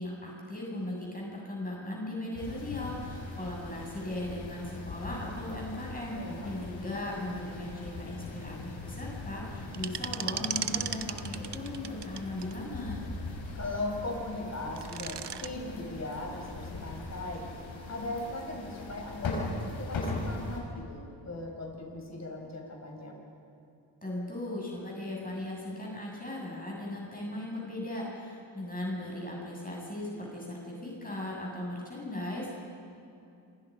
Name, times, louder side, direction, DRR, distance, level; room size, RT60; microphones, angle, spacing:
voice 1, 0.0-6.2 6.4-13.0 24.0-32.5, left 1 dB, 20° left, -3 dB, 7.5 m, -38 dB
sound 1, 2.3-20.6, left 2 dB, 85° left, 6.3 m, -40 dB
voice 2, 6.1-6.5 13.5-17.5 17.9-23.2, left 2 dB, 35° left, 0 dB, 5.8 m, -38 dB
sound 2, 9.7-12.5 14.6-15.5, right 9 dB, 60° right, 1.0 m, -35 dB
27.5 x 26.5 x 5.4 m, 2.6 s
cardioid pair, 75°, 46 cm